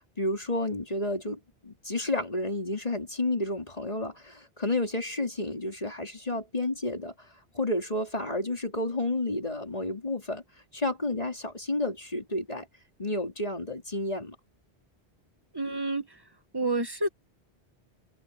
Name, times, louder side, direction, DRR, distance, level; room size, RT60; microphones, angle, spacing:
voice 1, 0.0-7.1 7.5-10.4 10.7-12.7 13.0-14.4, left 2 dB, 35° left, 3.7 m, -31 dB
voice 2, 15.5-16.1 16.5-17.1, right 2 dB, 20° right, 1.9 m, -28 dB
omnidirectional pair, 1.1 m